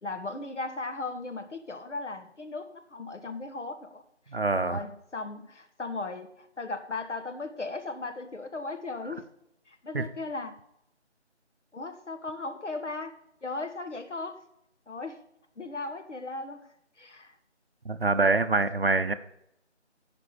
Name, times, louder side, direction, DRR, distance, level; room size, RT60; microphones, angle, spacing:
voice 1, 0.0-4.0 4.5-9.2 9.7-10.5 11.7-13.1 13.4-14.4 14.9-15.2 15.6-16.7 17.0-17.3 18.1-18.3 18.7-18.8, left 3 dB, 80° left, 7 dB, 1.5 m, -37 dB
voice 2, 4.3-4.8 9.9-10.1 17.8-19.1, right 3 dB, 55° right, 11 dB, 0.7 m, -25 dB
13.0 x 5.2 x 5.0 m, 0.77 s
figure-of-eight pair, 170°, 36 cm